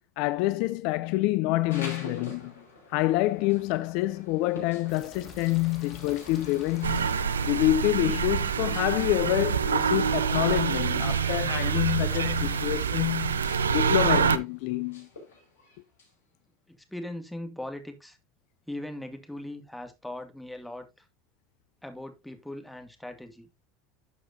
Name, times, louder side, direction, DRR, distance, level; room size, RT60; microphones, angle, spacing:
voice 1, 0.2-2.5 2.9-7.2 7.4-15.1, left 17 dB, 65° left, 0.5 m, -27 dB
sound 1, 1.7-16.1, left 2 dB, 80° left, 5.3 m, -48 dB
sound 2, 4.9-14.4, left 4 dB, 45° left, 3.0 m, -50 dB
sound 3, 6.8-14.4, right 6 dB, 90° right, 0.6 m, -26 dB
voice 2, 16.7-18.2 18.7-21.1 21.8-23.5, left 1 dB, 5° left, 2.3 m, -39 dB
12.0 x 6.7 x 2.7 m
hypercardioid pair, 80°, 0 cm